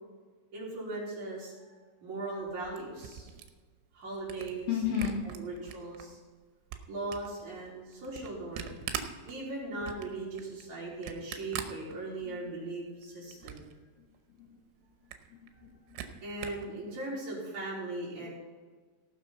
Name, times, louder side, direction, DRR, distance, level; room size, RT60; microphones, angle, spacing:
voice 1, 0.5-3.3 3.9-4.7 5.2-6.2 6.9-8.8 9.3-13.7 16.2-18.3, right 2 dB, 40° right, -6 dB, 4.4 m, -39 dB
Camera, 2.4-6.0 6.4-12.5 12.9-13.8 14.1-14.2 14.5-14.6 14.9-16.7, right 10 dB, 85° right, 3.2 m, -43 dB
voice 2, 4.7-5.2 10.0-10.1 12.2-12.5 14.3-14.6 15.3-16.0 18.2-18.3, left 9 dB, 65° left, -2 dB, 2.8 m, -34 dB
17.5 x 6.2 x 5.5 m, 1.4 s
omnidirectional pair, 5.4 m